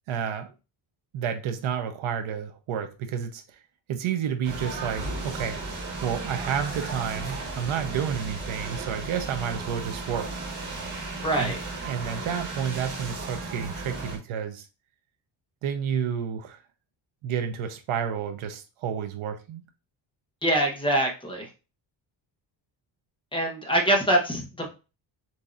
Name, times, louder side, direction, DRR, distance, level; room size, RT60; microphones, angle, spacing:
voice 1, 0.1-0.5 1.1-3.6 3.9-5.6 6.0-10.3 11.4-14.7 15.6-16.6 17.2-19.6, right 8 dB, 90° right, 0.9 m, -30 dB
sound 1, 4.4-14.2, right 3 dB, 40° right, 1.5 m, -35 dB
voice 2, 11.2-11.6 20.4-21.5 23.3-24.7, right 1 dB, 10° left, 1.0 m, -24 dB
7.4 x 2.7 x 2.5 m
wide cardioid pair, 165°, 48 cm